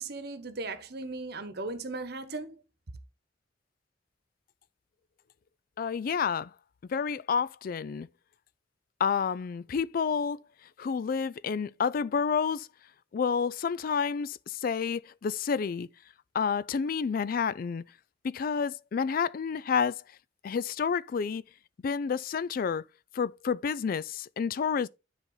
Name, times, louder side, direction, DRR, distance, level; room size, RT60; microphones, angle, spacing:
voice 1, 0.0-2.6, right 3 dB, 55° right, 1.1 m, -37 dB
voice 2, 5.8-6.5 6.9-8.1 9.0-10.4 10.8-12.7 13.1-15.9 16.3-17.8 18.2-20.0 20.4-21.4 21.8-22.8 23.1-24.9, left 6 dB, 50° left, 0.3 m, -29 dB
9.7 x 4.1 x 3.8 m
head